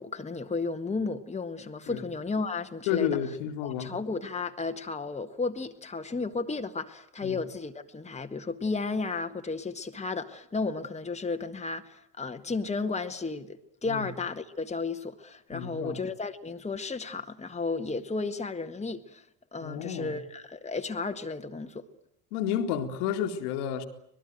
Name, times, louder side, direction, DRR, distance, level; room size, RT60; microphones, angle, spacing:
voice 1, 0.0-3.1 3.6-19.2 19.5-21.9, left 4 dB, 15° left, 1.6 m, -33 dB
voice 2, 2.9-4.0 7.2-7.4 13.9-14.1 15.5-16.0 19.6-20.2 22.3-23.9, left 9 dB, 65° left, 2.3 m, -31 dB
25.0 x 20.5 x 9.2 m
figure-of-eight pair, 55°, 48 cm